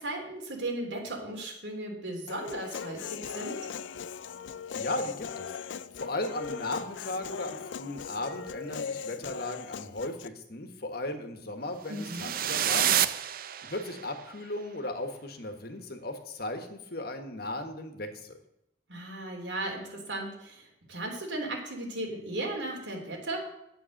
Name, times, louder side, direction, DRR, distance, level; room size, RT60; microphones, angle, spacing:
voice 1, 0.0-3.6 11.9-12.3 18.9-23.4, right 1 dB, 85° right, 1 dB, 3.2 m, -36 dB
Human voice, 2.3-10.3, left 6 dB, 90° left, 0.4 m, -39 dB
voice 2, 4.8-5.5 6.0-13.1 13.7-18.4, left 2 dB, 55° left, 7 dB, 1.5 m, -36 dB
sound 1, 11.9-14.1, right 10 dB, 55° right, 0.5 m, -28 dB
10.0 x 8.4 x 6.5 m, 0.84 s
head